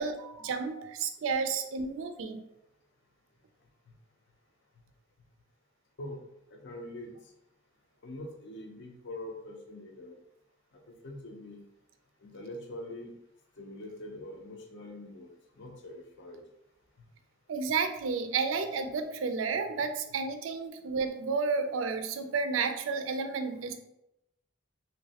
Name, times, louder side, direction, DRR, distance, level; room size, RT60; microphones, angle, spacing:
voice 1, 0.0-2.4 17.5-23.7, right 5 dB, 85° right, 7 dB, 0.4 m, -31 dB
voice 2, 6.5-7.1 8.0-10.1 10.9-11.6 12.2-13.1 13.6-15.3 15.6-16.4, left 1 dB, 65° left, 2 dB, 0.5 m, -43 dB
3.1 x 2.9 x 2.8 m, 0.85 s
head